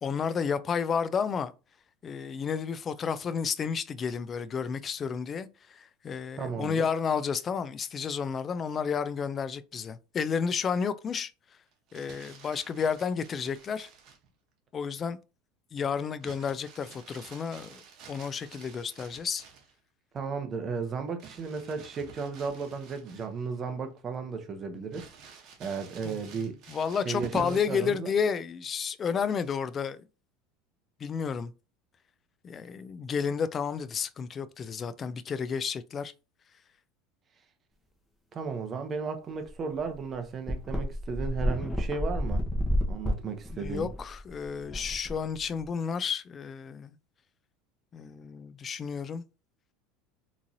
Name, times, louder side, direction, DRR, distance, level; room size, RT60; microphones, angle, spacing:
voice 1, 0.0-1.5 2.0-11.3 11.9-13.9 14.7-15.2 15.7-17.8 18.1-19.4 26.0-26.2 26.7-30.0 31.0-31.5 32.4-36.1 43.5-47.0 47.9-49.2, left 6 dB, 30° left, 0.4 m, -31 dB
voice 2, 6.4-6.9 20.1-25.1 25.6-26.6 27.0-28.1 38.3-42.4 42.9-43.9, right 5 dB, 30° right, 0.7 m, -34 dB
Crumpling crinkling, 11.7-14.3 16.2-19.7 21.2-23.6 24.0-24.1 24.9-27.9 29.3-29.7, right 7 dB, 50° right, 1.0 m, -49 dB
sound 1, 39.4-39.5 39.8-39.9 40.5-45.6, equal, 5° left, 1.2 m, -31 dB
3.7 x 3.0 x 2.7 m
supercardioid pair, 115°, 0 cm